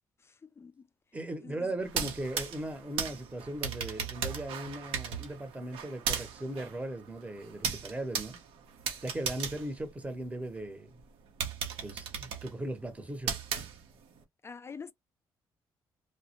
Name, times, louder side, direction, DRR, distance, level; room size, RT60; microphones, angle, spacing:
voice 1, 0.4-0.9 1.4-1.7 14.4-14.9, left 5 dB, 30° left, 0.3 m, -45 dB
voice 2, 1.1-8.4 9.0-11.0 11.8-13.4, right 1 dB, 15° right, 0.8 m, -38 dB
sound 1, 1.8-10.6 11.0-11.1 11.4-14.2, right 7 dB, 80° right, 0.7 m, -37 dB
2.2 x 2.1 x 2.8 m
supercardioid pair, 70°, 9 cm